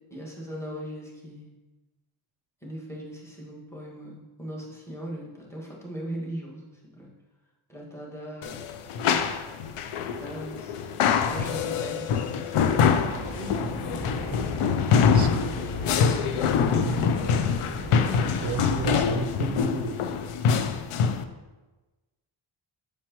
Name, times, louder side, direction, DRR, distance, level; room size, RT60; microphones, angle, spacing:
voice 1, 0.1-1.5 2.6-7.1 7.7-8.7 10.2-11.0 11.3-12.8 13.8-14.7, equal, 5° left, -4 dB, 1.7 m, -39 dB
sound 1, 8.4-21.2, left 6 dB, 90° left, 0.6 m, -25 dB
sound 2, 12.6-18.9, equal, 50° left, 1.6 m, -37 dB
voice 2, 13.3-13.9 15.1-15.5 16.6-17.6 18.4-20.0, right 4 dB, 40° right, 7 dB, 0.6 m, -33 dB
8.1 x 4.6 x 3.0 m, 1.2 s
wide cardioid pair, 100°, 50 cm